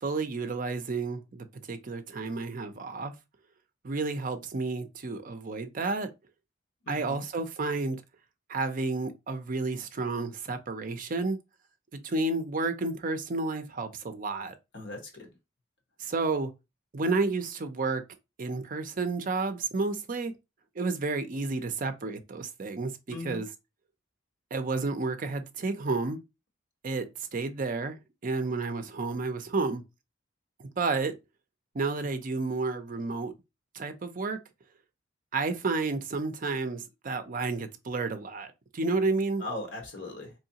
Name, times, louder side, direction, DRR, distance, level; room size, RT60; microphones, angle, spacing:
voice 1, 0.0-3.1 3.8-6.1 6.9-8.0 8.5-11.4 11.9-14.5 16.0-16.5 16.9-18.0 18.4-20.3 20.8-23.5 24.5-26.2 26.8-27.1 27.3-29.8 30.6-31.1 31.7-33.3 33.7-34.4 35.3-39.4, right 3 dB, 45° right, 0.5 m, -31 dB
voice 2, 6.8-7.2 14.7-15.3 23.1-23.4 39.4-40.3, left 2 dB, 65° left, 1.3 m, -38 dB
3.7 x 3.1 x 2.8 m
head